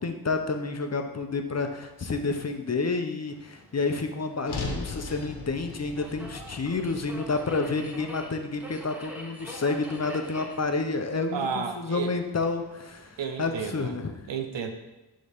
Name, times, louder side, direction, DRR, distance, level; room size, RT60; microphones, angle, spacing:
voice 1, 0.0-14.1, left 3 dB, 35° left, 6 dB, 0.7 m, -30 dB
Subway metro underground, 3.3-13.8, equal, 5° right, 1.1 m, -46 dB
sound 1, 4.5-8.7, left 3 dB, 65° left, 1.2 m, -38 dB
voice 2, 11.3-12.1 13.2-14.0 14.3-14.7, right 6 dB, 90° right, 6 dB, 0.8 m, -32 dB
10.5 x 3.8 x 3.6 m, 1.0 s
wide cardioid pair, 75°, 43 cm